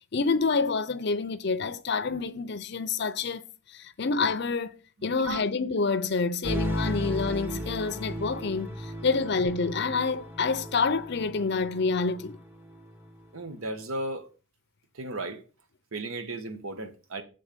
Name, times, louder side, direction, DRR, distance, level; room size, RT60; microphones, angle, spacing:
voice 1, 0.1-3.4 3.7-4.8 5.0-12.4, left 4 dB, 50° left, 0.5 m, -28 dB
sound 1, 6.4-13.2, equal, 10° right, 0.8 m, -36 dB
voice 2, 13.3-14.3 15.0-15.4 15.9-17.2, right 2 dB, 80° right, 1.2 m, -35 dB
7.3 x 3.9 x 6.6 m
head